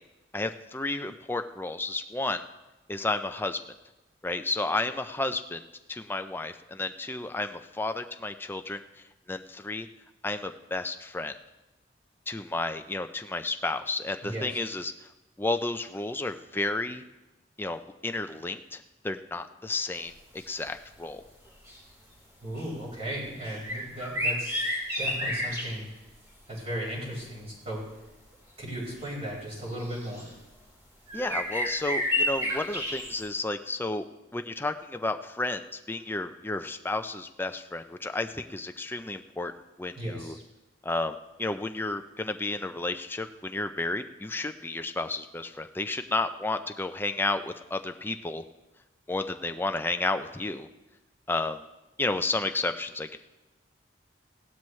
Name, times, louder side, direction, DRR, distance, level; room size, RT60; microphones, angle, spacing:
voice 1, 0.3-2.4 2.9-3.6 4.2-5.6 5.9-8.8 9.3-9.9 10.2-11.3 12.3-15.1 15.4-17.0 17.6-21.2 31.1-34.0 34.3-39.5 39.8-40.3 40.8-48.4 49.1-50.7 51.3-51.6 52.0-53.2, left 2 dB, 10° left, 7 dB, 0.5 m, -32 dB
sound 1, 20.4-20.5 20.9-21.0 21.4-22.1 22.5-22.7 23.4-25.8 27.9-28.0 29.0-29.1 29.7-30.3 31.1-33.2, left 1 dB, 20° right, 3.3 m, -31 dB
voice 2, 22.4-24.6 25.0-25.9 26.5-27.8 28.6-30.4 39.9-40.4, equal, 35° right, -4 dB, 4.8 m, -36 dB
16.5 x 12.0 x 3.2 m, 1.0 s
head